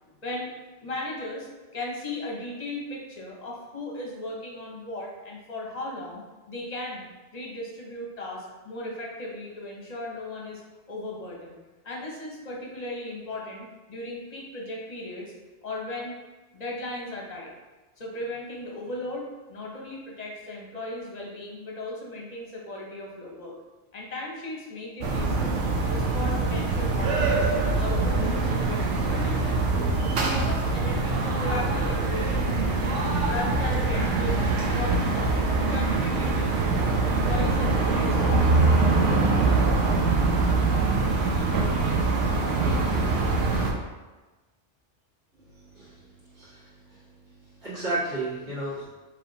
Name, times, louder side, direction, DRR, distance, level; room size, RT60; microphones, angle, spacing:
voice 1, 0.2-0.5 0.8-6.2 6.5-7.0 7.3-10.6 10.9-11.6 11.8-15.3 15.6-16.2 16.5-17.5 18.0-23.6 23.9-25.6 25.9-27.5 27.8-29.4 30.0-32.5 33.3-34.5 34.7-38.7, left 1 dB, 40° left, -2 dB, 0.8 m, -36 dB
sound 1, 25.0-43.7, right 3 dB, 85° right, 1.0 m, -24 dB
voice 2, 45.4-47.0 47.6-48.8, right 2 dB, 65° right, -10 dB, 1.9 m, -33 dB
4.8 x 3.1 x 2.7 m, 1.2 s
omnidirectional pair, 1.2 m